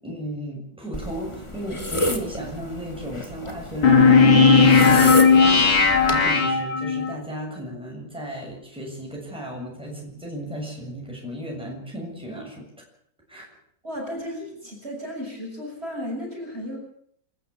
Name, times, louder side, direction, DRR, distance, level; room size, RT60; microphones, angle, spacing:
voice 1, 0.0-12.7 13.3-13.5, equal, 5° right, -2 dB, 7.2 m, -35 dB
sound 1, 0.9-6.2, equal, 15° left, 2.3 m, -30 dB
sound 2, 3.8-7.1, left 4 dB, 85° left, 3.4 m, -15 dB
voice 2, 13.8-16.8, equal, 30° right, 0 dB, 7.2 m, -34 dB
27.5 x 13.5 x 8.4 m, 0.66 s
omnidirectional pair, 2.1 m